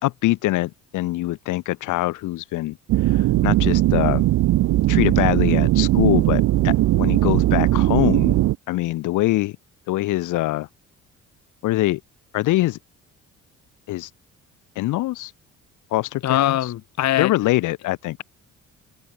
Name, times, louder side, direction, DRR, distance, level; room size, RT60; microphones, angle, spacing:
voice 1, 0.0-2.8 3.0-4.2 4.9-8.4 8.7-9.6 9.9-10.7 11.6-12.0 12.3-12.8 13.9-14.1 14.8-15.3 15.9-16.6 17.2-18.2, left 17 dB, 90° left, 1.2 m, -23 dB
sound 1, 2.9-8.6, right 15 dB, 80° right, 1.0 m, -19 dB
voice 2, 16.2-17.3, left 13 dB, 65° left, 0.9 m, -22 dB
cardioid pair, 90°, 30 cm